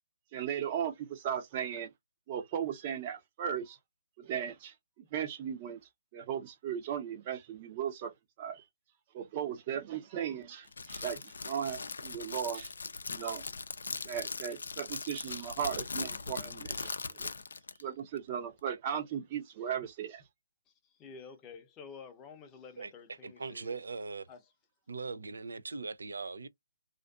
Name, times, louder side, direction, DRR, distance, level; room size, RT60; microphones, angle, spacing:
voice 1, 0.3-1.9 2.3-3.8 4.2-5.8 6.1-8.1 8.4-8.6 9.1-12.7 13.1-13.4 14.0-17.3 17.8-20.2, right 8 dB, 30° right, 0.7 m, -37 dB
Crackle, 10.7-17.8, left 4 dB, 70° left, 0.4 m, -40 dB
voice 2, 20.8-23.8 24.3-24.4, left 5 dB, 20° left, 0.7 m, -50 dB
voice 3, 23.2-24.3 24.9-26.5, right 4 dB, 75° right, 0.4 m, -40 dB
2.5 x 2.4 x 2.3 m
figure-of-eight pair, 145°, 0 cm